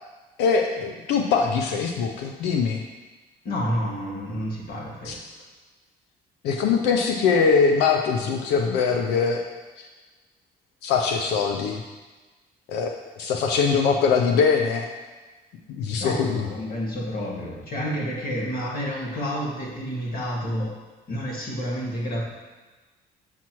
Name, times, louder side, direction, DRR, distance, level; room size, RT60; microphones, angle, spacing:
voice 1, 0.4-2.8 5.1-5.2 6.4-9.4 9.8-9.9 10.8-11.8 12.7-12.9 13.2-14.9 15.7-16.4, left 5 dB, 90° left, 3 dB, 0.6 m, -22 dB
voice 2, 3.4-5.2 16.0-20.7 21.1-22.2, equal, 60° left, -3 dB, 1.9 m, -29 dB
7.2 x 5.9 x 3.0 m, 1.2 s
cardioid pair, 110°, 17 cm